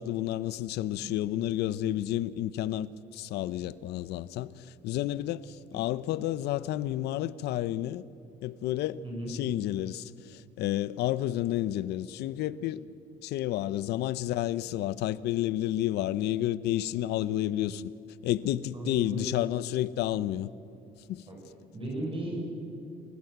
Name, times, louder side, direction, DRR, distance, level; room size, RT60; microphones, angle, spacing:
voice 1, 0.0-8.0 8.4-12.8 13.2-17.9 18.2-20.5 21.1-21.2, left 13 dB, 80° left, 0.7 m, -31 dB
voice 2, 18.7-19.3 21.3-21.4 21.7-22.4, right 1 dB, 30° right, 6.7 m, -35 dB
27.5 x 15.5 x 8.1 m
cardioid pair, 110°, 17 cm